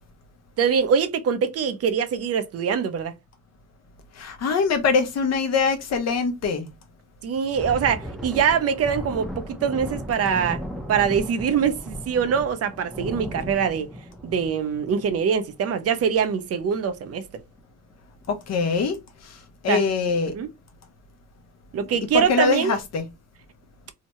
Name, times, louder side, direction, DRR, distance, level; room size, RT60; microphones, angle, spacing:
voice 1, 0.6-3.1 7.2-10.6 10.9-13.9 14.2-17.3 19.7-19.8 20.3-20.5 21.7-22.8, right 7 dB, 55° right, 0.6 m, -23 dB
voice 2, 4.1-6.7 18.3-19.0 19.2-20.3 21.8-23.1, left 5 dB, 60° left, 0.9 m, -23 dB
Thunder, 7.3-16.4 16.7-17.0 17.3-17.6 18.2-18.7, equal, ahead, 0.7 m, -36 dB
2.8 x 2.2 x 2.9 m
cardioid pair, 90°, 30 cm